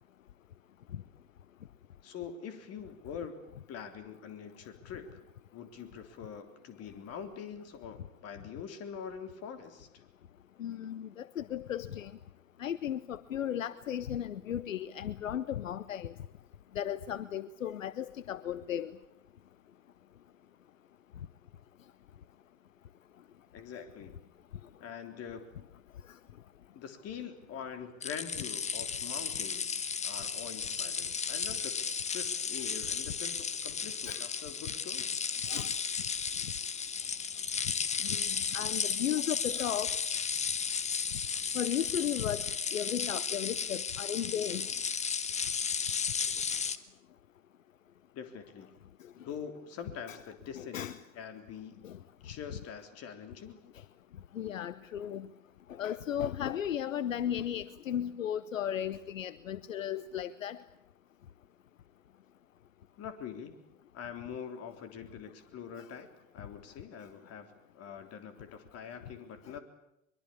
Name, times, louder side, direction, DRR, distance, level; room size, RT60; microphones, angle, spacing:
voice 1, 2.0-3.4 3.7-5.2 5.5-9.9 23.5-24.2 24.8-25.5 26.7-31.8 32.1-35.2 48.1-48.7 49.1-50.8 51.1-51.8 52.2-53.6 63.0-63.6 63.9-66.1 66.3-69.6, left 7 dB, 35° left, 8 dB, 3.6 m, -44 dB
voice 2, 10.6-12.1 12.6-16.1 16.7-18.9 34.1-34.3 35.5-35.8 38.0-40.0 41.5-42.5 42.7-44.7 50.1-50.2 50.5-51.0 51.8-52.0 54.3-55.3 55.7-60.6, left 10 dB, 75° left, 17 dB, 0.9 m, -35 dB
sound 1, 28.0-46.8, left 6 dB, 15° left, 1.2 m, -34 dB
23.5 x 23.0 x 8.6 m, 0.81 s
figure-of-eight pair, 85°, 40 cm